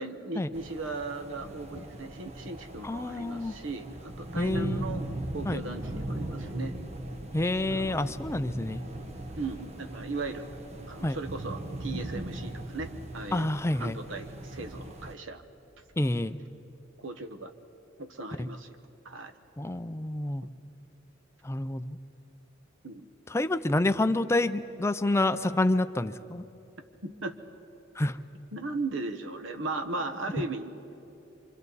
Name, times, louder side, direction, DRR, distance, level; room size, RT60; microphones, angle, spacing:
voice 1, 0.0-5.0 5.3-6.7 7.7-8.1 9.4-10.5 10.9-15.4 17.0-17.5 18.0-18.8 19.0-19.3 22.8-23.1 27.0-27.4 28.5-30.7, right 3 dB, 80° right, 8 dB, 1.1 m, -37 dB
sound 1, 0.5-15.1, right 1 dB, 35° right, 0.9 m, -39 dB
voice 2, 2.8-3.5 4.4-4.8 5.5-5.6 7.3-8.8 11.0-11.2 13.3-14.0 16.0-16.4 18.4-18.5 19.6-20.4 21.4-22.0 23.3-26.4 28.0-28.2, left 2 dB, 15° left, 11 dB, 0.4 m, -28 dB
27.0 x 25.5 x 4.1 m, 3.0 s
head